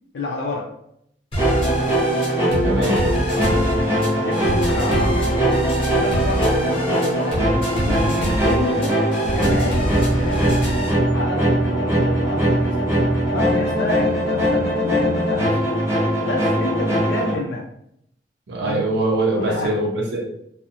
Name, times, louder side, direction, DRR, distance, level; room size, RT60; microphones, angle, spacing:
voice 1, 0.1-0.7 3.3-5.5 6.0-7.4 7.8-9.0 9.3-9.8 10.1-10.4 11.1-12.9 13.3-15.6 16.2-17.7 18.6-18.8 19.3-19.8, left 2 dB, 75° left, -2 dB, 0.4 m, -29 dB
sound 1, 1.3-10.9, equal, 30° left, 0.8 m, -26 dB
sound 2, 1.4-17.3, right 1 dB, 15° right, 0.6 m, -21 dB
voice 2, 2.6-3.0 18.5-20.2, right 2 dB, 75° right, -1 dB, 0.5 m, -22 dB
2.4 x 2.0 x 2.7 m, 0.75 s
head